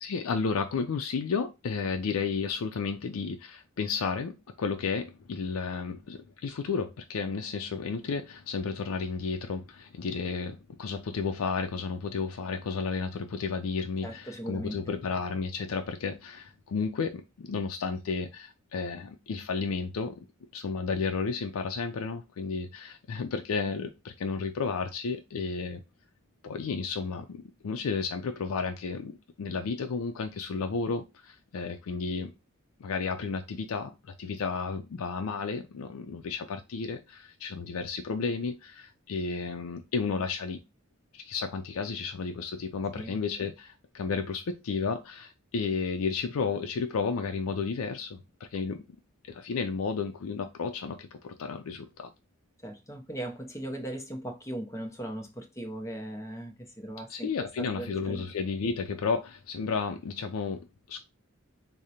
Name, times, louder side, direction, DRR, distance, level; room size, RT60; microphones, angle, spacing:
voice 1, 0.0-20.3 20.5-25.8 26.4-29.1 29.4-32.3 32.8-40.6 41.1-48.2 48.5-48.8 49.3-52.1 57.1-61.0, left 5 dB, 90° left, 0.4 m, -32 dB
voice 2, 14.0-14.8 43.0-43.2 52.6-57.3 57.6-58.2, right 1 dB, 15° left, 0.6 m, -38 dB
4.9 x 2.0 x 2.8 m
head